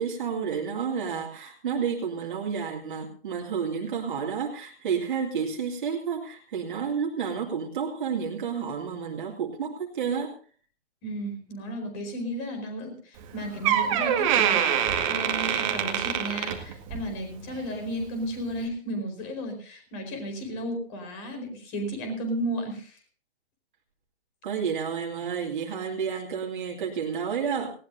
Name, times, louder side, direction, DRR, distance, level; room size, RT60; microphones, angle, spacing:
voice 1, 0.0-10.3 24.4-27.7, right 6 dB, 45° right, -1 dB, 2.4 m, -30 dB
voice 2, 11.0-23.0, equal, 25° left, 6 dB, 4.6 m, -34 dB
Door, 13.2-13.3 13.6-17.1 17.5-17.8 18.5-18.6, right 9 dB, 30° right, 1.9 m, -25 dB
19.0 x 17.5 x 2.7 m, 0.42 s
figure-of-eight pair, 135°, 33 cm